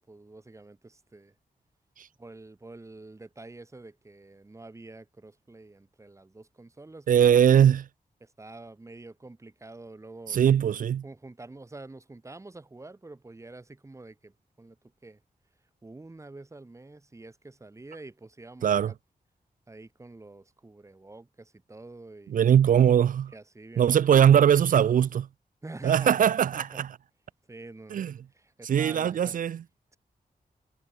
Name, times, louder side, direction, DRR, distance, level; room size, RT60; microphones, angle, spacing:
voice 1, 0.0-1.3 2.2-7.1 8.2-10.7 11.0-14.8 15.0-15.2 15.8-18.9 19.7-22.4 23.3-24.4 25.6-26.9 27.5-28.0 28.3-29.4, right 2 dB, 20° right, 4.2 m, -47 dB
voice 2, 7.1-7.9 10.3-11.0 18.6-18.9 22.3-23.3 23.8-25.3 25.8-26.9 27.9-28.1 28.6-29.6, right 9 dB, 60° right, 0.4 m, -21 dB
wide cardioid pair, 160°, 16 cm